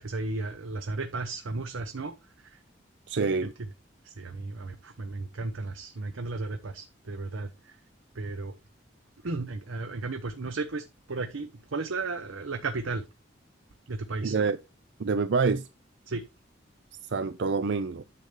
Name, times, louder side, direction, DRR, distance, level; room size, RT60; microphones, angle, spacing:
voice 1, 0.0-2.6 4.0-7.8 8.1-8.5 9.2-13.1 13.9-14.4 16.1-16.2, right 3 dB, 90° right, 0.8 m, -34 dB
voice 2, 3.1-3.5 14.2-14.6 15.0-15.7 17.0-18.0, right 4 dB, 60° right, 0.5 m, -26 dB
9.7 x 6.9 x 3.3 m
head